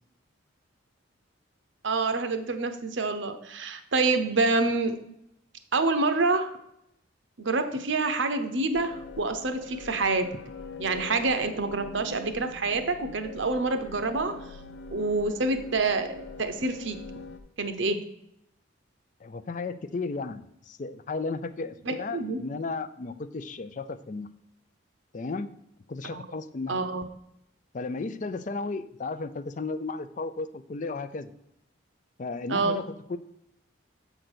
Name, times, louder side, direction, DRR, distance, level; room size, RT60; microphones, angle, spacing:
voice 1, 1.8-5.0 5.7-6.5 7.4-10.3 10.8-14.3 14.9-17.0 17.6-18.0 21.8-22.4 26.1-26.2 26.7-27.0 32.5-32.8, right 3 dB, 70° right, 8 dB, 0.8 m, -27 dB
sound 1, 8.7-17.4, left 3 dB, 75° left, 0.7 m, -43 dB
voice 2, 19.2-24.3 25.1-25.5 25.9-26.8 27.7-31.3 32.2-33.2, left 3 dB, 40° left, 12 dB, 0.4 m, -34 dB
7.6 x 3.9 x 6.1 m, 0.78 s
head